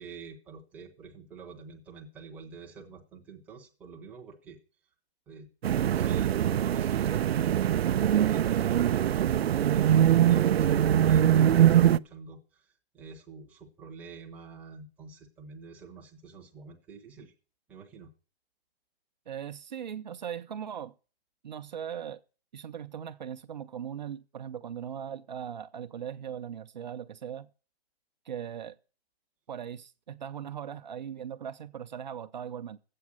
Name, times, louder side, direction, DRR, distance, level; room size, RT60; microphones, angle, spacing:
voice 1, 0.0-4.6 5.3-5.5 5.8-17.3 17.7-18.1, right 4 dB, 5° right, 0.8 m, -47 dB
sound 1, 5.6-12.0, right 10 dB, 85° right, 0.6 m, -23 dB
voice 2, 19.3-20.9 21.4-22.2 22.5-27.5 28.3-28.8 29.5-32.8, right 9 dB, 45° right, 0.8 m, -39 dB
13.0 x 8.6 x 6.3 m
hypercardioid pair, 175°, 30 cm